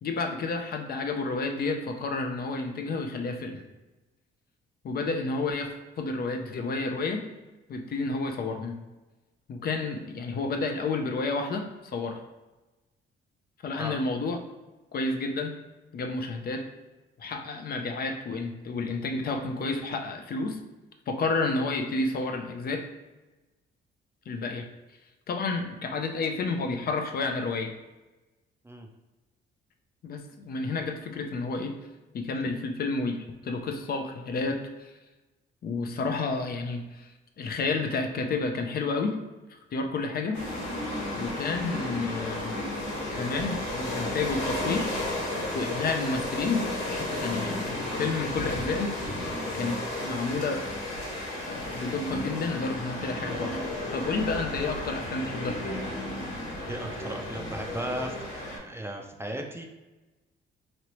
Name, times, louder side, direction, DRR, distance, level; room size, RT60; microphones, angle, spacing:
voice 1, 0.0-3.6 4.8-7.3 7.7-8.8 9.5-12.2 13.6-14.4 14.9-15.6 15.9-16.7 17.2-20.6 21.1-22.9 24.3-24.7 25.3-27.7 30.0-31.8 32.1-33.2 33.4-34.9 35.6-37.1 37.4-39.2 39.5-40.4 41.2-42.6 43.1-44.9 45.5-48.9 49.5-50.6 51.5-53.6 53.9-55.6, left 3 dB, 50° left, 4 dB, 0.5 m, -30 dB
sound 1, 40.3-58.6, left 1 dB, 80° left, 1.2 m, -33 dB
voice 2, 56.7-59.7, right 1 dB, 10° right, 2 dB, 0.4 m, -36 dB
3.0 x 2.8 x 3.0 m, 1.1 s
cardioid pair, 90°, 20 cm